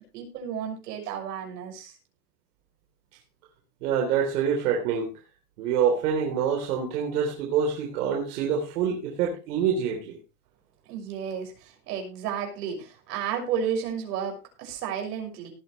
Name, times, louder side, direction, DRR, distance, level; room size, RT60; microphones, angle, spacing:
voice 1, 0.1-2.0 10.8-15.5, right 8 dB, 90° right, 3 dB, 6.5 m, -32 dB
voice 2, 3.8-5.1 5.6-10.2, right 7 dB, 70° right, 1 dB, 3.8 m, -26 dB
18.5 x 9.7 x 3.3 m, 0.29 s
supercardioid pair, 170°, 46 cm